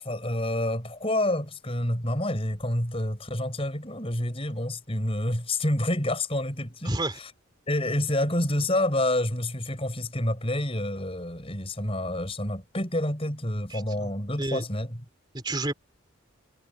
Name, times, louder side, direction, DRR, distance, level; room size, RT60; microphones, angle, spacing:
voice 1, 0.0-7.3 7.7-15.0, left 1 dB, 25° left, 6.5 m, -28 dB
voice 2, 6.8-7.2 13.7-14.1 14.4-14.6 15.3-15.7, right 2 dB, 20° right, 3.2 m, -30 dB
head